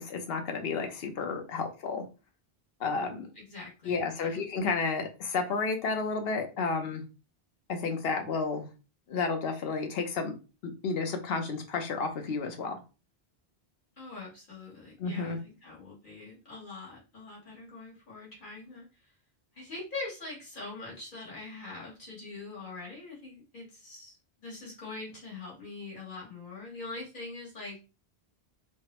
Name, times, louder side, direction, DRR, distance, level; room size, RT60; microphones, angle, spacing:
voice 1, 0.0-2.0 2.8-3.3 3.9-7.0 7.7-8.7 9.1-10.3 10.8-12.8 15.0-15.4, left 4 dB, 70° left, 5 dB, 0.9 m, -31 dB
voice 2, 3.3-4.4 14.0-18.9 19.5-27.8, left 3 dB, 55° left, -4 dB, 1.4 m, -43 dB
3.3 x 2.0 x 2.9 m, 0.31 s
omnidirectional pair, 1.1 m